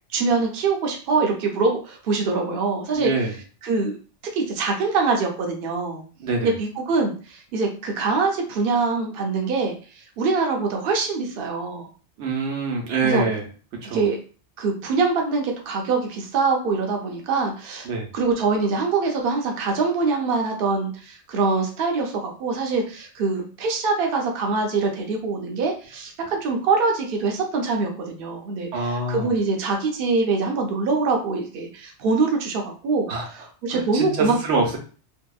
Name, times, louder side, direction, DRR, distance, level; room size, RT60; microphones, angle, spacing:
voice 1, 0.1-3.1 3.6-4.0 4.3-6.0 6.4-11.9 13.0-13.2 13.9-14.2 14.6-17.9 18.1-34.4, right 4 dB, 60° right, 1 dB, 0.7 m, -24 dB
voice 2, 2.9-3.3 6.2-6.5 12.2-13.4 13.8-14.0 17.8-18.1 28.7-29.3 33.1-33.3 33.7-34.8, right 3 dB, 90° right, 1 dB, 1.0 m, -25 dB
2.7 x 2.1 x 2.3 m, 0.38 s
omnidirectional pair, 1.2 m